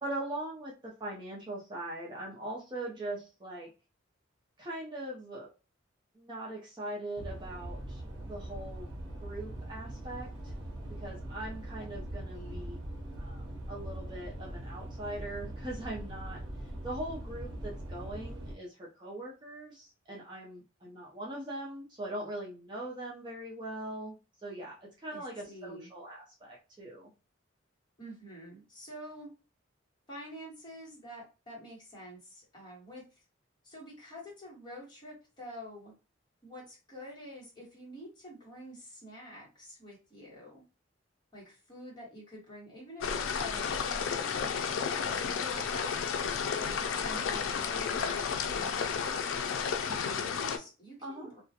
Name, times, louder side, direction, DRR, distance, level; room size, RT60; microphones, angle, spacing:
voice 1, 0.0-3.7 4.6-5.5 6.1-8.9 9.2-10.5 11.0-12.8 13.2-16.4 16.8-27.1 47.1-47.5 51.0-51.3, right 1 dB, 25° right, -4 dB, 0.5 m, -41 dB
sound 1, 7.2-18.5, right 1 dB, 75° right, 0.7 m, -41 dB
voice 2, 12.3-12.7 25.1-25.9 28.0-29.3 30.1-33.0 33.6-35.9 36.4-40.6 41.3-44.7 45.1-46.1 46.6-49.0 49.9-51.4, equal, 25° left, -5 dB, 1.1 m, -47 dB
sound 2, 43.0-50.6, left 6 dB, 90° left, 0.4 m, -32 dB
2.3 x 2.1 x 2.7 m, 0.31 s
head